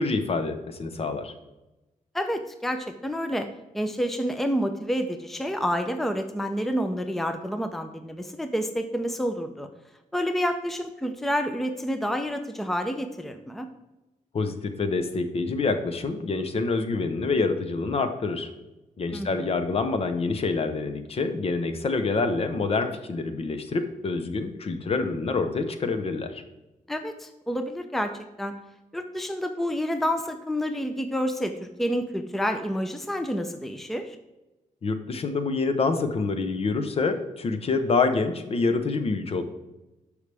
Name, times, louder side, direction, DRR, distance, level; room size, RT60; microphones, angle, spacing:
voice 1, 0.0-1.3 14.3-18.5 19.0-26.4 34.8-39.4, left 3 dB, 45° left, 9 dB, 0.8 m, -26 dB
voice 2, 2.1-3.5 3.7-9.7 10.1-13.7 19.1-19.6 26.9-28.5 28.9-34.2, equal, ahead, 7 dB, 0.6 m, -29 dB
12.0 x 4.9 x 3.4 m, 1.0 s
wide cardioid pair, 120°, 14 cm